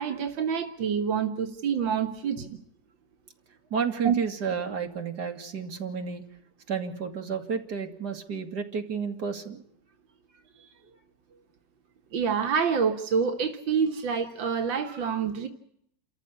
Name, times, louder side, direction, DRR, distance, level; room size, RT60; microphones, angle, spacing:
voice 1, 0.0-2.6 4.0-4.2 12.1-15.5, right 6 dB, 90° right, 5 dB, 2.1 m, -27 dB
voice 2, 3.7-6.2 6.7-9.6 10.6-10.7, right 6 dB, 60° right, 4 dB, 2.9 m, -31 dB
29.0 x 14.0 x 8.3 m, 0.72 s
omnidirectional pair, 2.0 m